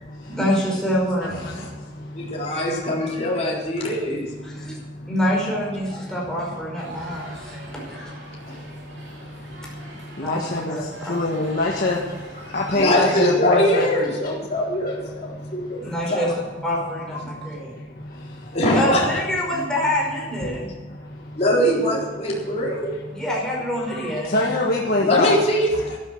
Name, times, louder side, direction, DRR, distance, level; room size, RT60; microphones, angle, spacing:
voice 1, 0.3-1.4 3.4-3.5 4.4-4.8 5.1-8.1 9.6-9.7 10.2-11.3 15.8-16.3 16.6-17.7 18.7-20.7 23.1-24.3, equal, 5° left, -4 dB, 5.2 m, -26 dB
voice 2, 2.1-4.3 8.5-8.6 12.4-15.8 16.1-16.3 17.1-17.5 18.5-19.1 19.5-19.6 20.4-20.5 21.4-22.9 23.9-24.0 25.0-26.0, equal, 35° left, -4 dB, 3.9 m, -22 dB
sound 1, 6.8-12.8, right 2 dB, 70° right, 3.7 m, -43 dB
voice 3, 10.2-10.8 11.1-12.0 12.5-13.9 24.3-25.4, left 2 dB, 50° left, -2 dB, 1.6 m, -22 dB
12.5 x 11.5 x 6.6 m, 1.3 s
head